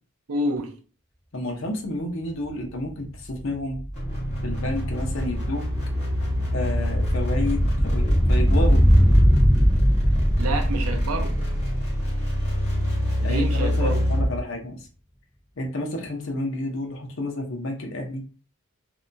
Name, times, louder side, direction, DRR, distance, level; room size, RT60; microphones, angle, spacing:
voice 1, 0.3-0.8 10.4-11.4 13.2-14.0, right 1 dB, 85° right, 0.6 m, -28 dB
voice 2, 1.3-3.8 4.4-5.6 6.5-8.9 13.2-14.9 15.6-18.2, left 1 dB, 60° left, 0.7 m, -30 dB
sound 1, 2.4-2.5 2.8-13.1 13.4-13.5, equal, 10° right, 0.7 m, -22 dB
sound 2, 3.9-14.4, equal, 30° left, 1.1 m, -26 dB
2.7 x 2.2 x 2.5 m
head